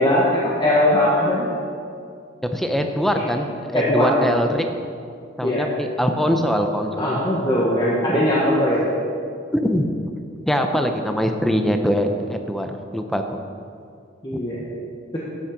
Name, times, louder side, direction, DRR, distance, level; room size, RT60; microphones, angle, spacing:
voice 1, 0.0-1.5 2.8-2.9 3.7-4.3 5.4-5.7 7.0-8.8 14.2-14.6, left 1 dB, 25° left, -6 dB, 1.4 m, -20 dB
voice 2, 2.4-3.5 3.7-4.6 5.4-7.0 9.5-9.9 10.5-13.4 14.3-14.4, equal, ahead, 5 dB, 0.7 m, -22 dB
13.0 x 8.8 x 5.2 m, 2.4 s
head